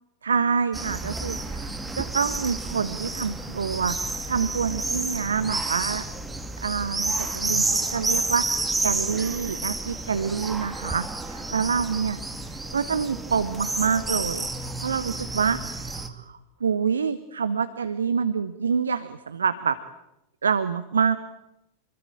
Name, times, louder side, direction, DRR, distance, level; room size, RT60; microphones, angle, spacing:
voice 1, 0.2-6.0 6.6-12.2 12.7-19.8 20.4-21.2, right 6 dB, 70° right, 14 dB, 1.1 m, -27 dB
sound 1, 0.7-16.1, right 2 dB, 10° right, 2.4 m, -30 dB
27.5 x 22.0 x 9.0 m, 0.89 s
figure-of-eight pair, 90°, 0 cm